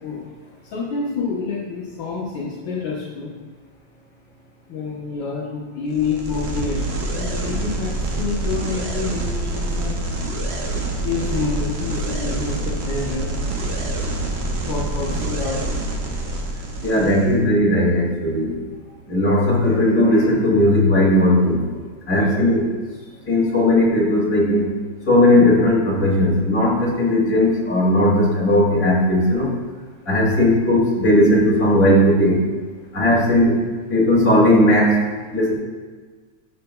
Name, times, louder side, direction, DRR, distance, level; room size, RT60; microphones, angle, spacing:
voice 1, 0.7-3.4 4.7-10.0 11.0-13.6 14.6-15.6 17.0-17.1 22.1-22.3 33.1-33.2, left 4 dB, 75° left, -7 dB, 1.8 m, -28 dB
sound 1, 5.9-17.3, right 2 dB, 50° right, 0.8 m, -26 dB
voice 2, 16.8-18.6 19.1-21.6 22.1-22.7 23.3-24.7 25.1-29.5 30.1-32.4 32.9-33.6 33.9-35.0 35.3-35.5, left 1 dB, 45° left, -6 dB, 2.9 m, -17 dB
11.0 x 7.0 x 2.3 m, 1.4 s
omnidirectional pair, 2.1 m